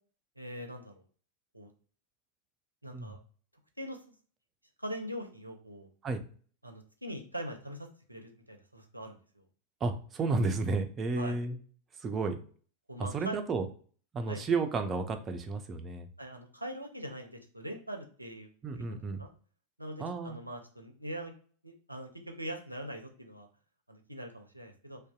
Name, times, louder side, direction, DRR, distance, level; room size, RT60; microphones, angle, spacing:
voice 1, 0.4-1.0 1.5-1.7 2.8-3.2 3.8-4.0 4.8-5.9 6.6-9.4 11.2-11.4 12.9-13.4 14.3-14.4 16.2-19.3 19.8-21.3 21.6-23.5 23.9-25.0, equal, 85° right, 4 dB, 0.4 m, -42 dB
voice 2, 9.8-11.6 12.0-12.4 13.0-13.7 14.1-16.1 18.6-19.2 20.0-20.4, right 3 dB, 25° right, 7 dB, 0.3 m, -32 dB
2.6 x 2.1 x 2.3 m, 0.43 s
figure-of-eight pair, 90°, 0 cm